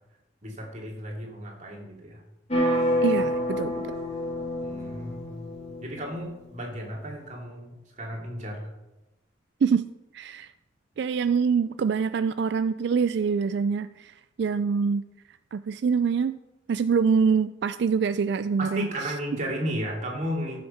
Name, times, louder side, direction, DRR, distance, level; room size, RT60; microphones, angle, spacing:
voice 1, 0.4-2.2 4.6-5.5 5.8-8.7 18.6-20.6, equal, 40° right, -1 dB, 2.8 m, -34 dB
sound 1, 2.5-6.3, equal, 30° left, 2.9 m, -28 dB
voice 2, 3.0-3.9 9.6-9.9 10.1-10.5 11.0-15.0 15.5-16.4 16.7-19.1, right 6 dB, 55° right, 12 dB, 0.3 m, -25 dB
15.0 x 6.5 x 5.7 m, 1.0 s
head